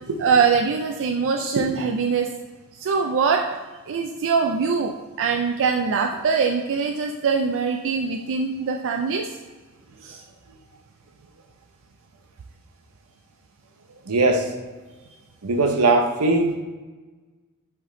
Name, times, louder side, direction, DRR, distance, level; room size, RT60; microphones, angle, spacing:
voice 1, 0.2-2.3 2.7-3.4 3.9-9.3 10.0-10.2, right 5 dB, 60° right, 3 dB, 0.4 m, -23 dB
voice 2, 14.1-14.5 15.4-16.6, right 2 dB, 85° right, 4 dB, 0.8 m, -20 dB
7.7 x 3.4 x 3.7 m, 1.3 s
head